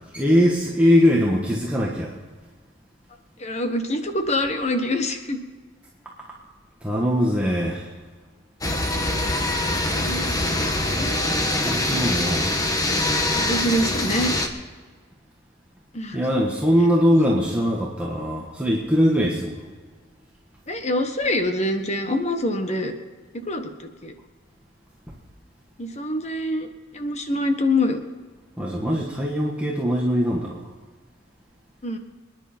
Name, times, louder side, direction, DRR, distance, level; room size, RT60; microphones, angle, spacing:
voice 1, 0.1-2.2 6.0-6.4 6.8-7.9 11.6-12.6 16.1-19.6 28.6-30.7, equal, 5° right, -4 dB, 1.5 m, -21 dB
voice 2, 3.4-5.4 9.6-10.6 10.9-11.2 13.3-14.3 15.9-16.2 20.7-22.9 23.3-24.1 25.8-28.0 31.8-32.0, left 1 dB, 35° left, 6 dB, 1.4 m, -25 dB
sound 1, 8.6-14.5, left 1 dB, 20° left, 1.3 m, -24 dB
26.5 x 10.5 x 4.4 m, 1.5 s
head